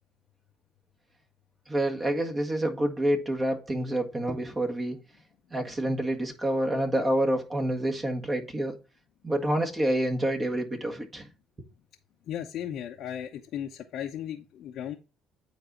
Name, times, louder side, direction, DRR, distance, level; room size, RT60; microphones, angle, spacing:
voice 1, 1.7-5.0 5.5-8.7 9.2-11.3, right 1 dB, 25° right, 1.7 m, -28 dB
voice 2, 12.3-15.0, left 10 dB, 65° left, 0.9 m, -36 dB
9.0 x 4.1 x 3.9 m
supercardioid pair, 85°, 0 cm